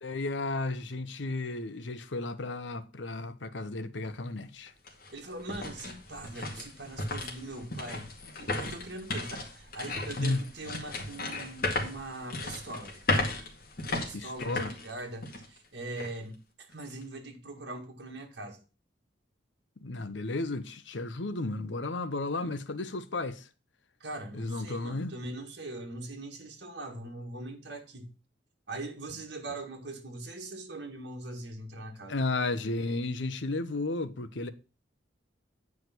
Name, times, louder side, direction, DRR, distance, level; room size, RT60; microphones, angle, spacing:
voice 1, 0.0-4.7 10.2-10.4 14.1-14.7 19.8-23.5 24.3-25.1 32.1-34.5, left 2 dB, 75° left, 0.8 m, -33 dB
sound 1, 4.1-4.2 4.7-15.6 16.0-16.1 16.7-17.0, left 2 dB, 50° left, 2.2 m, -35 dB
voice 2, 5.1-8.1 8.4-13.0 13.8-18.6 24.0-28.1 28.7-32.2, right 2 dB, 60° right, 2.0 m, -41 dB
9.4 x 4.9 x 5.9 m
head